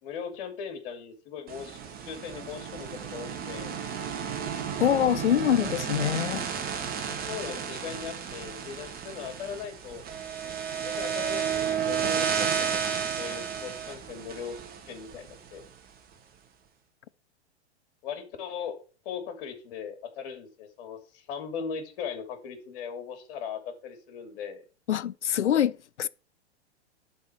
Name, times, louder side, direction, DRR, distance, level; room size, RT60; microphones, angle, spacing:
voice 1, 0.0-3.8 7.1-10.0 10.8-12.9 13.2-14.6 14.9-15.6 18.0-18.8 19.0-24.6, left 7 dB, 55° left, 2.8 m, -39 dB
sound 1, 1.5-15.7, right 7 dB, 25° right, 1.8 m, -32 dB
voice 2, 4.8-6.4 24.9-26.1, left 10 dB, 90° left, 0.6 m, -25 dB
11.5 x 4.4 x 5.8 m
hypercardioid pair, 115°, 34 cm